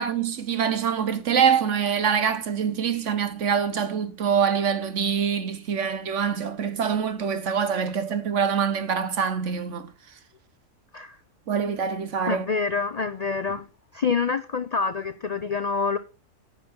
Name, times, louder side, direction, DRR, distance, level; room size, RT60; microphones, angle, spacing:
voice 1, 0.0-9.9 11.5-12.4, right 7 dB, 55° right, 1.3 m, -25 dB
voice 2, 12.3-13.6 13.9-16.0, left 5 dB, 65° left, 0.4 m, -26 dB
9.9 x 5.7 x 7.0 m
omnidirectional pair, 1.6 m